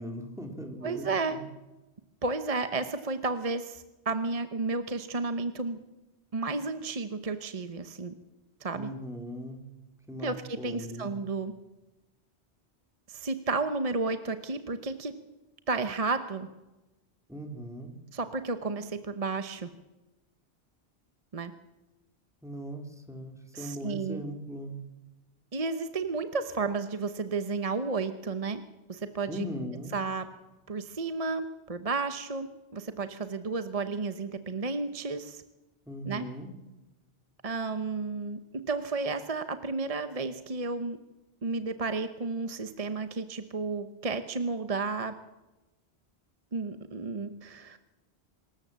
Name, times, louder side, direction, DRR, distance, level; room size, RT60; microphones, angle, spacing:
voice 1, 0.0-1.4 8.7-9.6 10.1-11.1 17.3-17.9 22.4-24.8 29.3-29.9 35.9-36.5, equal, 5° right, 3 dB, 3.2 m, -39 dB
voice 2, 0.8-1.4 2.2-5.8 6.3-8.1 8.6-8.9 10.2-11.5 13.1-15.1 15.7-16.5 18.1-19.7 21.3-21.5 23.5-24.2 25.5-28.6 28.9-29.4 29.9-30.3 30.7-35.4 36.0-36.2 37.4-38.4 38.7-41.0 41.4-45.1 46.5-47.8, right 3 dB, 35° right, 10 dB, 1.0 m, -32 dB
25.5 x 13.5 x 7.5 m, 1.1 s
omnidirectional pair, 1.1 m